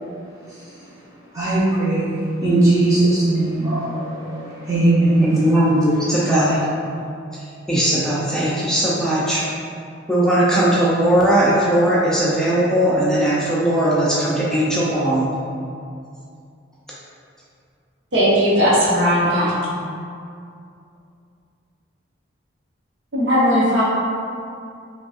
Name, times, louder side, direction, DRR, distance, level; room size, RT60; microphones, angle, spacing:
voice 1, 1.3-5.4 6.3-6.6, right 2 dB, 15° right, -9 dB, 0.9 m, -19 dB
voice 2, 5.2-6.6 7.3-9.5 10.1-15.3, right 1 dB, 5° left, -7 dB, 0.4 m, -19 dB
voice 3, 18.1-19.5 23.1-23.8, equal, 65° right, -7 dB, 0.9 m, -17 dB
5.1 x 2.4 x 2.4 m, 2.4 s
head